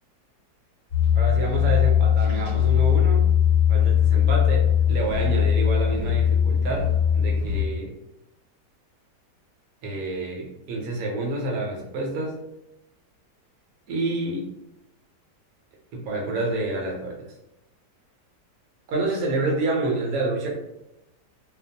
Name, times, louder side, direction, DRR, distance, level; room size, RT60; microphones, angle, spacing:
sound 1, 0.9-7.6, left 9 dB, 30° left, 1.2 m, -20 dB
voice 1, 1.1-3.2 3.7-6.9 7.1-7.9 9.8-12.4 13.9-14.5 15.9-17.1 18.9-20.5, right 2 dB, 65° right, -1 dB, 1.0 m, -28 dB
2.8 x 2.0 x 2.7 m, 0.90 s
omnidirectional pair, 1.8 m